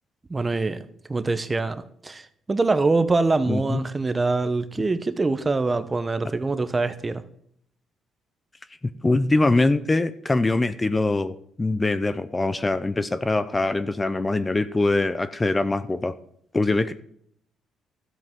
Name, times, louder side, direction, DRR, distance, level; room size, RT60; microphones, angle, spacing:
voice 1, 0.3-0.8 1.1-7.2, right 3 dB, 25° right, 0.7 m, -24 dB
voice 2, 3.5-3.8 9.0-16.1 16.5-16.9, left 2 dB, 20° left, 0.6 m, -23 dB
13.5 x 7.8 x 3.7 m
cardioid pair, 100°, 0 cm